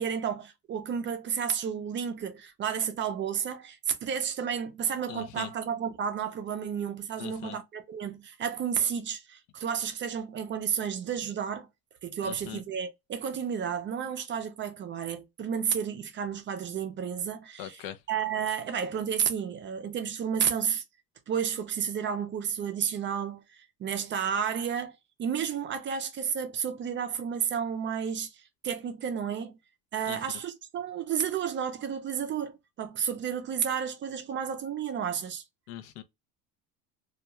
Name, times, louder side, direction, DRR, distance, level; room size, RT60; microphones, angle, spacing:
voice 1, 0.0-11.7 12.0-20.8 21.3-24.9 25.2-29.6 29.9-35.4, right 7 dB, 30° right, 0.4 m, -32 dB
voice 2, 5.1-5.5 7.2-7.6 12.2-12.6 17.6-18.0 30.1-30.4 35.7-36.0, left 11 dB, 80° left, 0.6 m, -40 dB
2.3 x 2.2 x 2.8 m
cardioid pair, 130°, 38 cm